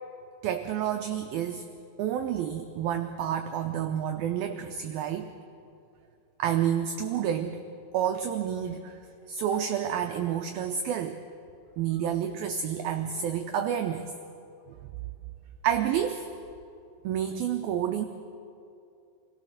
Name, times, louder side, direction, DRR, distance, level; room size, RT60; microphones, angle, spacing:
voice 1, 0.4-1.7 2.0-5.3 6.4-7.6 7.9-9.0 9.3-11.2 11.8-14.1 15.6-16.3 17.0-18.1, right 9 dB, 85° right, 6 dB, 2.1 m, -29 dB
25.5 x 17.0 x 6.5 m, 2.5 s
omnidirectional pair, 5.2 m